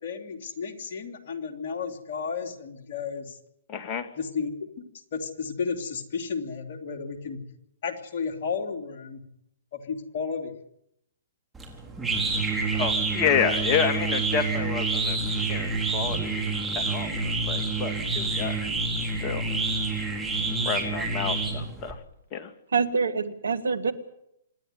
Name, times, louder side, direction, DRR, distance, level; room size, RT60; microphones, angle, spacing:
voice 1, 0.0-3.4 4.2-4.5 4.8-4.9 5.1-7.4 7.8-9.2 9.7-10.5, left 5 dB, 55° left, 3 dB, 3.4 m, -33 dB
voice 2, 3.7-4.1 12.7-18.7 19.2-19.5 20.6-22.0 22.3-22.5, left 7 dB, 30° left, 7 dB, 2.4 m, -29 dB
sound 1, 11.6-21.9, right 3 dB, 10° right, 4.5 m, -28 dB
voice 3, 22.7-23.9, right 5 dB, 80° right, 13 dB, 1.8 m, -25 dB
26.5 x 10.5 x 9.6 m, 0.79 s
hypercardioid pair, 130°, 0 cm